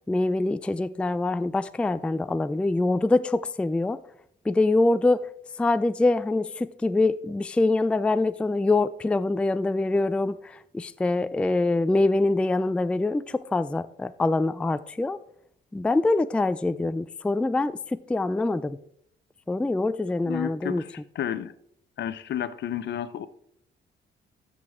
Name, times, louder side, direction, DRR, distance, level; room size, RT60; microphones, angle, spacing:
voice 1, 0.1-4.0 4.4-15.2 15.7-18.8 19.5-20.8, left 2 dB, 5° left, 0.3 m, -24 dB
voice 2, 20.2-20.8 21.2-21.5 22.0-23.3, left 10 dB, 60° left, 0.7 m, -31 dB
13.0 x 6.6 x 3.6 m
cardioid pair, 90°, 20 cm